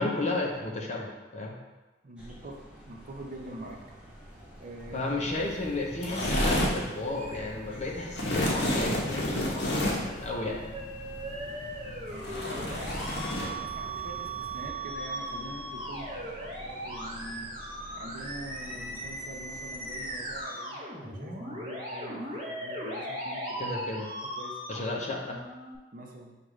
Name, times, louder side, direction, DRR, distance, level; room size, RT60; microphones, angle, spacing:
voice 1, 0.0-1.6 4.9-10.6 23.6-24.1 24.7-25.4, left 2 dB, 40° left, -1 dB, 0.6 m, -33 dB
voice 2, 2.0-2.6 2.9-3.8 4.6-5.2 11.8-12.9 13.4-17.5 17.9-23.8 24.2-24.6 25.9-26.4, right 1 dB, 45° right, 0 dB, 0.6 m, -44 dB
sound 1, 2.2-20.4, equal, 5° right, 0.7 m, -49 dB
sound 2, 5.2-14.7, left 1 dB, 65° left, 0.8 m, -32 dB
Musical instrument, 9.8-25.8, right 1 dB, 30° right, 1.0 m, -38 dB
6.4 x 2.5 x 3.1 m, 1.1 s
head